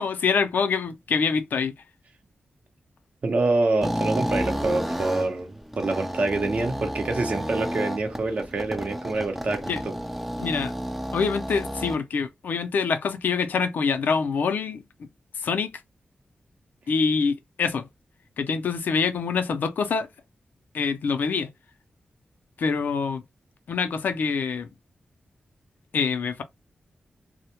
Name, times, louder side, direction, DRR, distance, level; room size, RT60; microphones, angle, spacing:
voice 1, 0.0-1.7 9.7-9.8 10.4-10.7 11.1-14.8 15.4-15.8 16.9-17.8 18.4-20.1 20.7-21.5 22.6-23.2 23.7-24.7 25.9-26.4, left 5 dB, 90° left, 0.4 m, -25 dB
voice 2, 3.2-9.9, right 2 dB, 50° right, 0.6 m, -26 dB
sound 1, 3.8-12.0, equal, 5° right, 0.3 m, -31 dB
2.1 x 2.1 x 2.8 m
wide cardioid pair, 95°, 3 cm